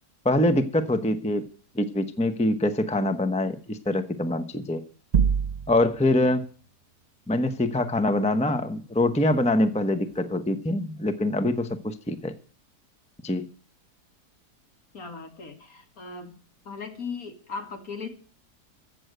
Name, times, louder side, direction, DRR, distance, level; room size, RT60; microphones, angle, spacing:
voice 1, 0.2-1.5 1.7-4.8 5.7-6.5 7.3-12.3 13.2-13.5, left 1 dB, 5° left, 10 dB, 0.7 m, -24 dB
sound 1, 5.1-6.1, right 7 dB, 75° right, 0.3 m, -24 dB
voice 2, 14.9-16.4 16.6-18.1, left 4 dB, 60° left, 5 dB, 2.6 m, -37 dB
15.0 x 7.2 x 7.9 m, 0.41 s
omnidirectional pair, 1.7 m